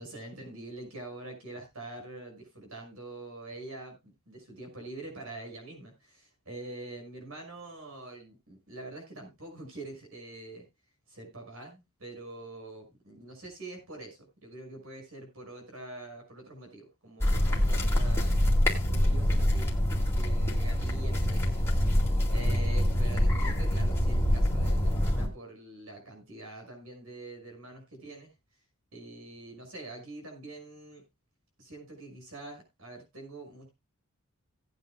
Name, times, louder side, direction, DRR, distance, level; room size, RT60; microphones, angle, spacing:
voice 1, 0.0-10.7 11.1-18.4 18.8-22.0 22.3-28.3 28.9-31.0 31.6-33.7, right 2 dB, 65° right, 6.0 m, -45 dB
sound 1, 17.2-25.3, left 1 dB, 10° left, 2.3 m, -25 dB
18.5 x 9.1 x 2.2 m
head